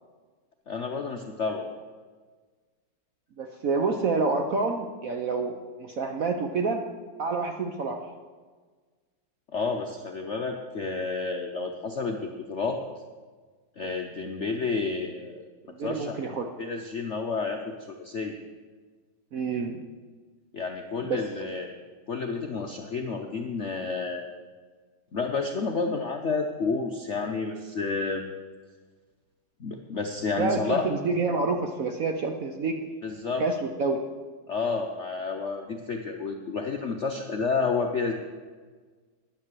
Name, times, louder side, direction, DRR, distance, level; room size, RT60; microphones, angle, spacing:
voice 1, 0.7-1.7 9.5-12.8 13.8-15.4 15.8-16.2 16.6-18.4 20.5-21.7 22.1-24.2 25.1-28.3 29.6-30.8 33.0-33.4 34.5-38.1, left 4 dB, 60° left, 3 dB, 0.7 m, -30 dB
voice 2, 3.4-6.8 7.2-8.1 15.7-16.5 19.3-19.8 21.0-21.2 30.4-32.7 33.4-34.0, right 4 dB, 60° right, 4 dB, 0.9 m, -28 dB
10.5 x 9.4 x 7.5 m, 1.5 s
omnidirectional pair, 2.3 m